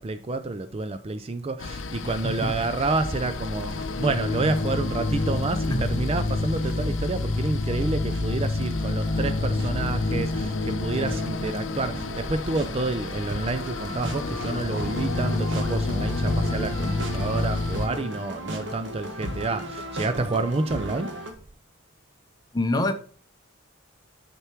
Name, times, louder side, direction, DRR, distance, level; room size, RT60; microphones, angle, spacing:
voice 1, 0.0-21.2, right 3 dB, 30° right, 0.4 m, -29 dB
sound 1, 1.6-17.9, left 2 dB, 65° left, 0.6 m, -28 dB
voice 2, 2.0-2.5 5.7-5.8 22.5-22.9, left 1 dB, 20° left, 0.8 m, -26 dB
sound 2, 3.3-17.5, left 1 dB, ahead, 2.2 m, -47 dB
sound 3, 3.6-21.3, right 1 dB, 60° right, 1.4 m, -37 dB
6.6 x 6.0 x 4.5 m
head